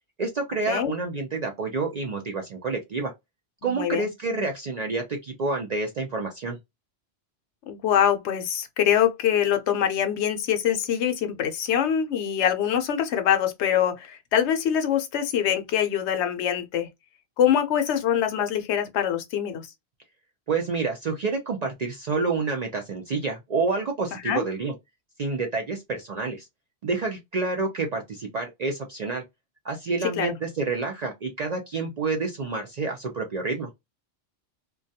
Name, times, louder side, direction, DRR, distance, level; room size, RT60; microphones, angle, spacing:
voice 1, 0.2-3.1 3.6-6.6 20.5-24.7 25.2-26.5 26.8-29.2 29.6-33.7, right 4 dB, 60° right, 0.4 m, -28 dB
voice 2, 3.6-4.1 7.7-16.9 17.4-19.7 24.2-24.4 30.2-30.3, left 9 dB, 80° left, 0.8 m, -24 dB
2.2 x 2.2 x 2.6 m
omnidirectional pair, 1.2 m